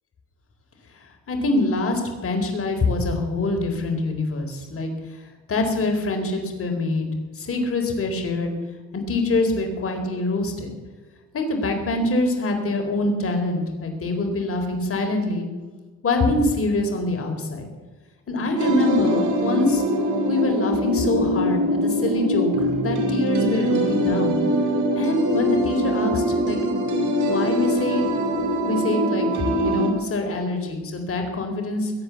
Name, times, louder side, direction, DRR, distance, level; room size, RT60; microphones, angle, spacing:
voice 1, 1.3-4.9 5.5-7.1 7.4-8.5 8.9-10.7 11.3-15.5 16.0-17.7 18.3-19.8 20.3-24.4 25.0-26.6 27.2-28.0 28.7-31.9, left 2 dB, 50° left, 4 dB, 4.1 m, -24 dB
sound 1, 18.6-29.9, equal, 75° right, 3.3 m, -23 dB
21.0 x 8.6 x 7.0 m, 1.3 s
cardioid pair, 90°, 30 cm